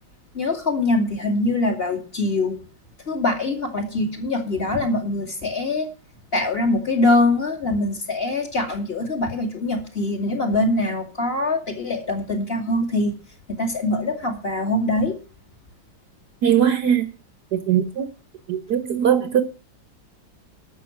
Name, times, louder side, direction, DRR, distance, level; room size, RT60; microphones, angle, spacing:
voice 1, 0.3-2.6 3.1-5.9 6.3-13.1 13.5-15.2, left 2 dB, 30° left, 2.5 m, -23 dB
voice 2, 16.4-17.1 17.5-18.1 18.5-19.4, right 9 dB, 60° right, 1.4 m, -20 dB
12.5 x 6.6 x 7.2 m
omnidirectional pair, 2.1 m